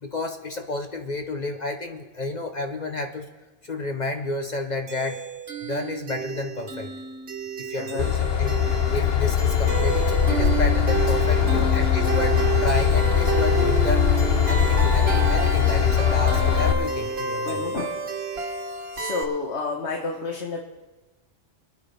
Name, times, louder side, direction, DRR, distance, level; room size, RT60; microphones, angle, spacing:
voice 1, 0.0-3.3 3.6-5.2 5.6-6.9 7.6-17.6, left 2 dB, 45° left, 4 dB, 0.9 m, -31 dB
sound 1, 4.9-19.2, right 5 dB, 65° right, 1.5 m, -30 dB
voice 2, 7.8-8.1 11.4-11.7 17.4-17.9 18.9-20.6, left 4 dB, 80° left, 1 dB, 1.5 m, -30 dB
Train / Engine, 8.0-16.7, left 8 dB, 65° left, 1.2 m, -21 dB
26.5 x 9.5 x 3.4 m, 1.2 s
omnidirectional pair, 1.1 m